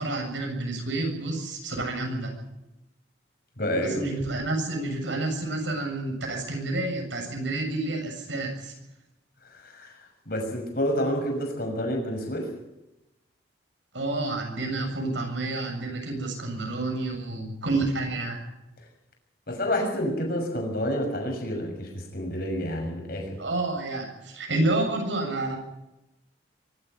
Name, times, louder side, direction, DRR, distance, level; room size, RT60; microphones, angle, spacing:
voice 1, 0.0-2.4 3.8-8.7 13.9-18.4 23.4-25.6, right 2 dB, 75° right, 3 dB, 7.3 m, -29 dB
voice 2, 3.6-4.0 9.5-10.0 10.2-12.5 19.5-23.4, equal, 50° left, 3 dB, 6.4 m, -29 dB
24.0 x 13.0 x 9.5 m, 0.93 s
head